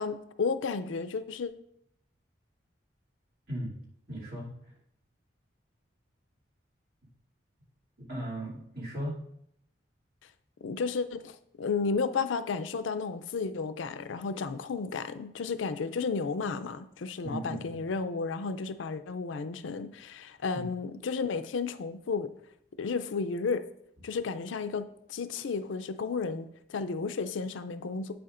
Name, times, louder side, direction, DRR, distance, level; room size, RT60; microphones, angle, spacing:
voice 1, 0.0-1.5 10.6-22.3 22.8-23.6 24.0-28.1, left 4 dB, 90° left, 0.5 m, -33 dB
voice 2, 4.1-4.5 8.1-9.1 17.2-17.8 20.5-20.7, right 1 dB, 55° right, 2.6 m, -36 dB
8.4 x 6.9 x 2.5 m
head